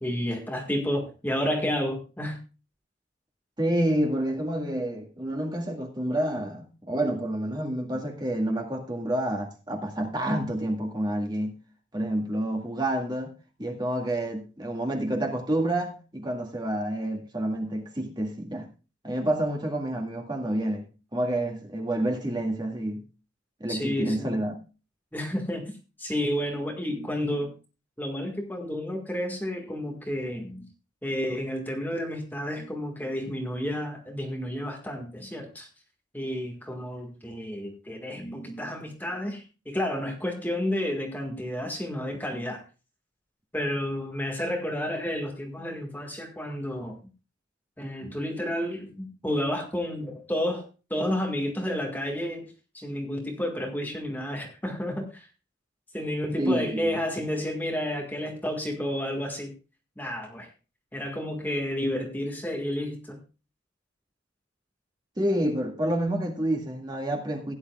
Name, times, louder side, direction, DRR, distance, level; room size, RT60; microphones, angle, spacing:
voice 1, 0.0-2.4 23.7-24.4 25.1-25.7 26.0-27.5 28.0-30.6 31.0-35.7 36.1-42.6 43.5-46.9 47.8-50.6 50.9-55.3 55.9-59.5 60.0-60.5 60.9-63.2, left 1 dB, 10° left, 1.7 m, -31 dB
voice 2, 3.6-11.6 11.9-13.3 13.6-18.7 19.0-20.9 21.1-23.0 23.6-24.6 56.4-56.9 65.2-67.5, right 1 dB, 20° right, 2.0 m, -28 dB
16.5 x 10.0 x 2.3 m
head